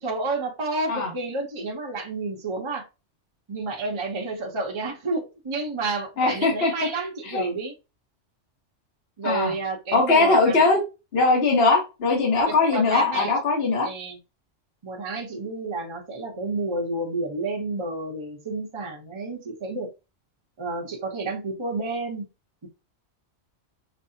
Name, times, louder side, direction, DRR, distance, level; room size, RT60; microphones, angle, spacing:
voice 1, 0.0-2.8 3.5-7.7 9.2-10.6 12.4-13.3 13.8-14.2 14.8-19.9 20.6-22.3, right 3 dB, 25° right, 0.8 m, -30 dB
voice 2, 6.2-6.7 7.3-7.5 9.2-9.5 9.9-10.8 11.1-13.9, left 3 dB, 55° left, 1.4 m, -20 dB
5.3 x 2.1 x 2.7 m
omnidirectional pair, 1.2 m